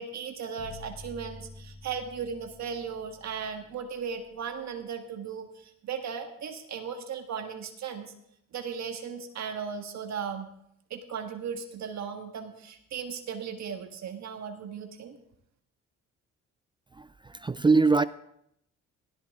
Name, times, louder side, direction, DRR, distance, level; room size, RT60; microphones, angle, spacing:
voice 1, 0.0-8.1 8.5-10.5 10.9-15.2, right 6 dB, 65° right, 4 dB, 1.6 m, -37 dB
sound 1, 0.6-4.7, left 3 dB, 75° left, 3.2 m, -49 dB
voice 2, 16.9-18.0, right 4 dB, 15° right, 14 dB, 0.4 m, -23 dB
16.0 x 13.0 x 3.7 m, 0.76 s
cardioid pair, 90°, 30 cm